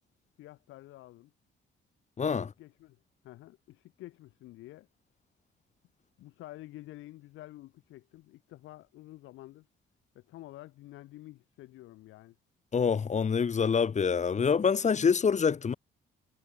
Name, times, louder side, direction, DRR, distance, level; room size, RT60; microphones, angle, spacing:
voice 1, 0.4-1.3 2.6-3.0 3.2-4.9 6.2-9.7 10.1-12.4, left 16 dB, 90° left, 1.5 m, -49 dB
voice 2, 2.2-2.5 12.7-15.7, left 6 dB, 35° left, 1.2 m, -26 dB
cardioid pair, 90°, 20 cm